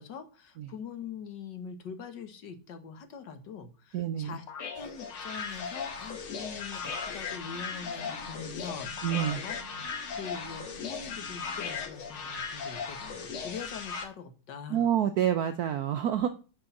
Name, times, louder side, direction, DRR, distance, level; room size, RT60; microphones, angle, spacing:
voice 1, 0.0-4.4 4.7-8.9 9.4-9.6 9.9-14.8, left 6 dB, 60° left, 9 dB, 1.7 m, -43 dB
voice 2, 3.9-4.4 9.0-9.4 14.7-16.3, right 10 dB, 75° right, 9 dB, 0.9 m, -28 dB
sound 1, 4.5-14.0, left 5 dB, 85° left, 2.4 m, -37 dB
sound 2, 7.1-12.0, left 1 dB, 35° left, 1.8 m, -52 dB
6.2 x 5.6 x 7.0 m, 0.36 s
omnidirectional pair, 2.3 m